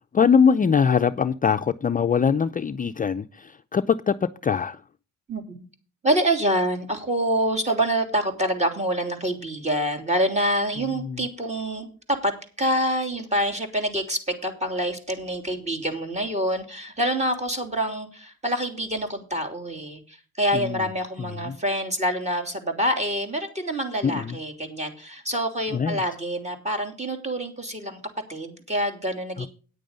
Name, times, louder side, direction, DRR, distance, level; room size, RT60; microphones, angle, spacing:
voice 1, 0.1-4.8 11.0-11.3 20.5-20.8 21.4-21.6 24.0-24.4 25.7-26.0 29.4-29.5, left 6 dB, 30° left, 0.5 m, -22 dB
voice 2, 5.3-5.7 6.0-12.3 12.6-28.0 28.3-29.5, right 1 dB, 20° right, 3.0 m, -26 dB
9.5 x 9.1 x 5.2 m
cardioid pair, 90°, 30 cm